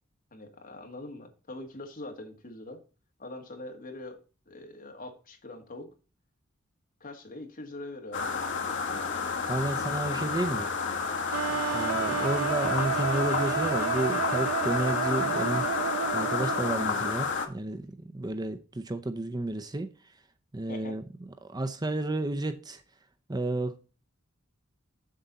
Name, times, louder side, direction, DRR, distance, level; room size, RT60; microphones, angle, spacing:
voice 1, 0.3-2.8 3.2-4.2 4.5-5.9 7.0-8.4 9.5-10.3 11.5-11.6 20.7-20.9, left 2 dB, 40° left, 1.9 m, -43 dB
sound 1, 8.1-17.5, left 5 dB, 60° left, 1.4 m, -30 dB
voice 2, 9.5-10.7 11.1-11.2 11.7-20.1 20.5-21.1 21.4-22.8 23.3-23.8, right 2 dB, 20° right, 0.6 m, -32 dB
sound 2, 11.3-17.1, right 9 dB, 75° right, 0.3 m, -32 dB
7.6 x 7.0 x 4.0 m
head